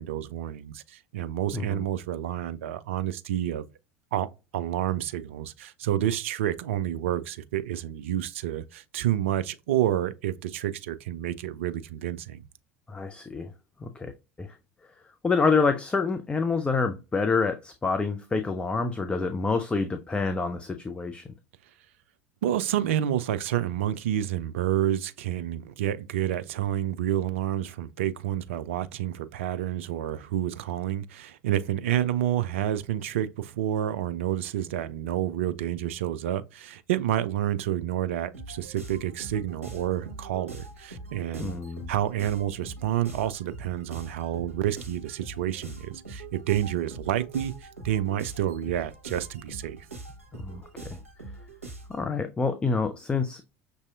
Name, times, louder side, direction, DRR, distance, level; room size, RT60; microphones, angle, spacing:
voice 1, 0.0-3.7 4.1-12.4 22.4-41.6 41.9-49.9, right 11 dB, 65° right, 0.3 m, -29 dB
voice 2, 12.9-13.5 13.8-14.1 14.4-14.6 15.2-21.3 41.4-41.9 50.3-51.0 51.9-53.4, left 4 dB, 15° left, 0.4 m, -27 dB
sound 1, 38.3-52.0, right 2 dB, 85° right, 0.9 m, -43 dB
6.0 x 2.7 x 2.3 m
figure-of-eight pair, 70°, 7 cm